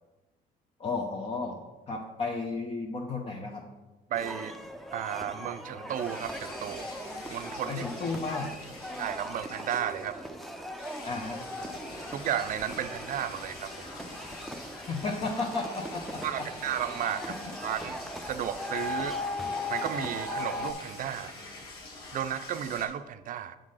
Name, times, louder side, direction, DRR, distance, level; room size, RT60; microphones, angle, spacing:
voice 1, 0.8-1.6 1.9-3.6 7.7-8.5 11.0-11.4 14.7-16.5 17.3-17.5, left 3 dB, 35° left, 1 dB, 0.8 m, -33 dB
sound 1, 4.1-20.7, left 1 dB, ahead, 0.6 m, -39 dB
voice 2, 4.1-4.6 4.9-6.9 7.3-7.8 9.0-10.2 12.1-13.9 16.2-17.3 17.6-18.0 18.3-19.2 19.7-21.3 22.1-23.6, right 10 dB, 55° right, 11 dB, 0.5 m, -33 dB
sound 2, 5.9-22.9, left 2 dB, 70° left, 1.8 m, -46 dB
7.5 x 3.8 x 6.4 m, 1.1 s
cardioid pair, 110°, 17 cm